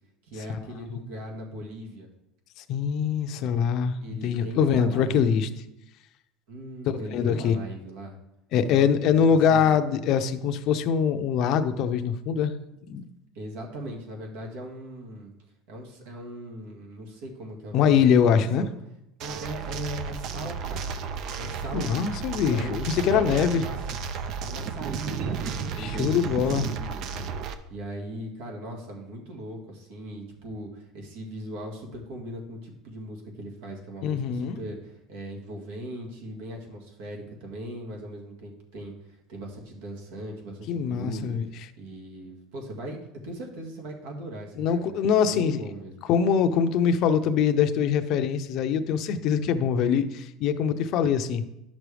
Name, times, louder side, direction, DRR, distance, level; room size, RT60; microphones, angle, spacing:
voice 1, 0.2-2.1 4.0-5.3 6.5-8.2 8.7-9.8 13.3-15.3 15.7-17.9 18.2-18.7 19.2-20.9 21.4-21.9 22.5-23.8 24.4-27.1 27.7-45.9, right 1 dB, 75° right, 1 dB, 1.9 m, -39 dB
voice 2, 2.6-5.5 7.1-7.6 8.5-12.5 12.9-13.0 17.7-18.7 21.7-23.6 25.8-26.7 27.2-27.3 34.0-34.6 40.7-41.4 44.6-45.6 46.1-51.4, left 7 dB, 50° left, 9 dB, 0.6 m, -23 dB
sound 1, 19.2-27.5, right 5 dB, 50° right, 0.6 m, -33 dB
10.5 x 6.2 x 3.4 m, 0.86 s
supercardioid pair, 140°, 0 cm